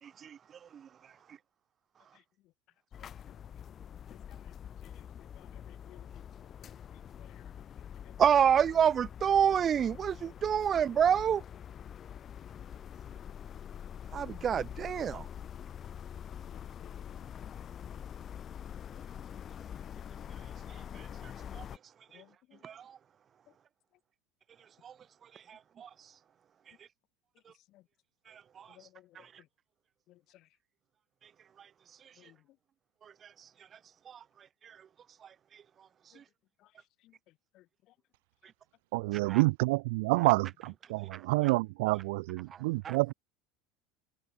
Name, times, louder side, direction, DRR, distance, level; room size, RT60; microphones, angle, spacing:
voice 1, 0.0-0.4 0.7-0.8 8.2-11.4 14.1-15.3 20.4-21.6 22.1-22.2 22.6-23.0 24.8-24.9 25.2-26.2 26.7-26.9 28.3-28.9 29.2-29.3 31.2-31.3 31.6-32.3 33.0-33.8 34.1-34.2 34.6-34.8 35.2-35.6 36.0-36.2 39.1-39.4 41.1-41.2 42.8-43.0, right 8 dB, 25° right, 0.7 m, -30 dB
sound 1, 2.9-21.8, left 9 dB, 25° left, 4.0 m, -45 dB
voice 2, 5.4-6.1 7.2-7.4 8.0-8.1 14.2-14.5 16.8-17.2 22.1-22.3 27.7-27.8 28.8-29.0 32.2-32.3 37.6-37.7, left 16 dB, 40° left, 2.3 m, -58 dB
voice 3, 38.9-43.1, right 24 dB, 70° right, 3.6 m, -28 dB
supercardioid pair, 165°, 0 cm